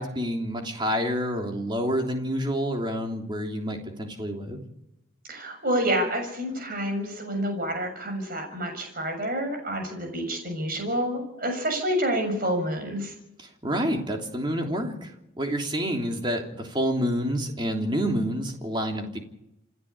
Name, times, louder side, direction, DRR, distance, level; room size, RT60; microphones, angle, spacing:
voice 1, 0.0-4.6 13.6-15.1 15.4-19.2, equal, 25° right, 2 dB, 3.2 m, -28 dB
voice 2, 5.3-13.1, right 1 dB, 45° right, 5 dB, 7.1 m, -28 dB
28.5 x 11.0 x 8.5 m, 0.84 s
head